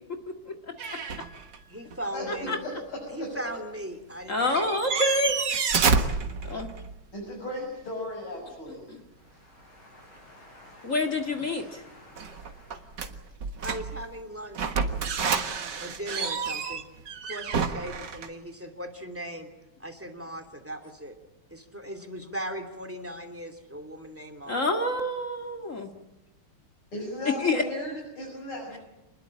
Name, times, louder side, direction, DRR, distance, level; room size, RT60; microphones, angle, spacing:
voice 1, 0.8-3.3 7.1-8.8 9.2-13.0 26.9-28.8, left 1 dB, 80° left, -1 dB, 7.5 m, -39 dB
sound 1, 0.8-1.6 1.9-2.0 4.1-4.2 4.4-7.0 12.2-14.1 14.5-18.3, right 5 dB, 60° right, 2.1 m, -29 dB
voice 2, 1.7-2.6 3.1-4.7 13.6-14.8 15.4-16.8 17.2-19.5 19.8-21.2 21.5-24.6, right 1 dB, 5° right, 4 dB, 2.8 m, -38 dB
voice 3, 2.3-2.6 4.3-5.4 6.4-6.7 10.8-11.8 24.5-25.9 27.4-27.6, left 2 dB, 40° left, 4 dB, 2.1 m, -27 dB
27.0 x 20.5 x 8.8 m, 0.98 s
omnidirectional pair, 2.3 m